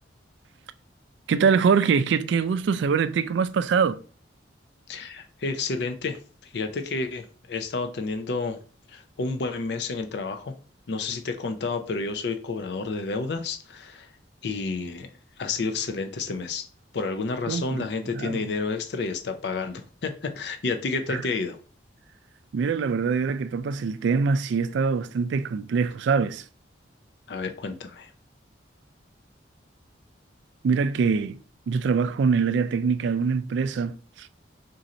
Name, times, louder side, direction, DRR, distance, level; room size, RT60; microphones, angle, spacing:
voice 1, 1.3-4.0 17.5-17.9 18.1-18.4 21.1-21.2 22.5-26.4 30.6-31.4 31.7-34.3, right 5 dB, 70° right, 0.3 m, -24 dB
voice 2, 4.9-8.6 8.9-10.5 10.9-14.1 14.4-15.1 15.4-16.7 16.9-21.6 27.3-28.1, left 4 dB, 60° left, 0.5 m, -30 dB
3.8 x 2.6 x 4.2 m
head